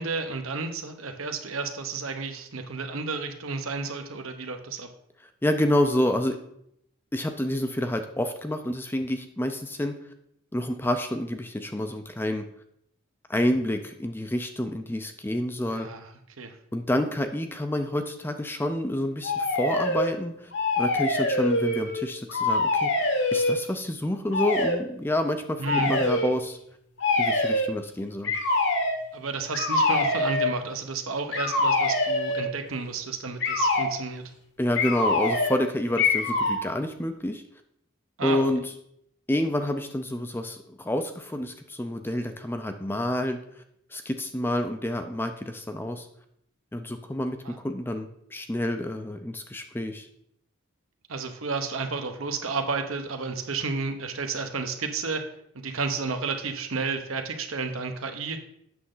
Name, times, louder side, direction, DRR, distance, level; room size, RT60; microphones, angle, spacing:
voice 1, 0.0-4.9 15.7-16.1 16.4-16.6 25.6-26.1 29.1-34.2 38.2-38.4 47.4-47.6 51.1-55.2 55.5-58.4, right 4 dB, 75° right, 6 dB, 0.9 m, -31 dB
voice 2, 5.4-6.4 7.1-9.9 10.5-12.5 13.3-15.9 16.7-20.5 20.8-26.6 27.2-28.3 34.6-37.4 38.2-38.6 39.3-43.4 43.9-46.1 46.7-50.1, left 1 dB, 10° left, 7 dB, 0.4 m, -28 dB
sound 1, 19.2-20.1 20.5-22.0 22.3-23.6 24.3-24.8 25.6-26.3 27.0-27.7 28.2-29.0 29.5-30.5 31.3-32.5 33.4-33.9 34.7-35.6 36.0-36.6, left 2 dB, 55° left, 1.1 m, -24 dB
8.5 x 6.5 x 3.8 m, 0.74 s
head